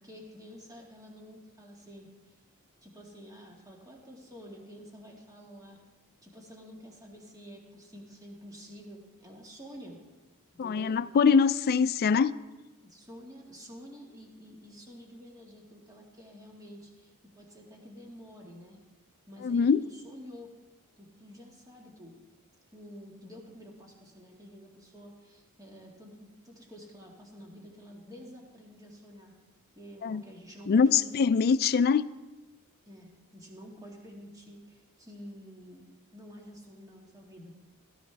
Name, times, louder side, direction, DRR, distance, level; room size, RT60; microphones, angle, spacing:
voice 1, 0.0-2.1 2.8-5.8 6.2-10.0 10.6-11.0 12.8-18.8 19.3-20.5 21.0-22.1 22.7-29.3 29.8-31.2 32.9-35.8 36.1-37.5, equal, 15° right, 1.8 m, -49 dB
voice 2, 10.6-12.3 19.4-19.8 30.0-30.2 30.7-32.0, left 6 dB, 45° left, 0.3 m, -23 dB
17.0 x 12.0 x 3.4 m
head